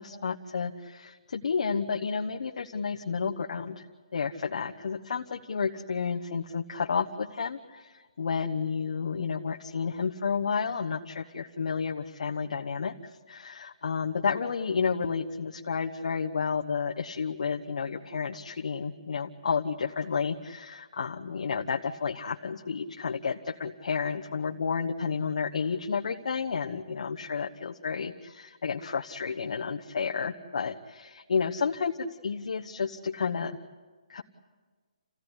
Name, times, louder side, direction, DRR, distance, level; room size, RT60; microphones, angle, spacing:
voice 1, 0.0-3.8 4.1-12.9 13.3-28.1 28.5-33.6 34.1-34.2, left 5 dB, 60° left, 3 dB, 1.1 m, -31 dB
28.5 x 17.0 x 9.9 m, 1.4 s
hypercardioid pair, 170°, 4 cm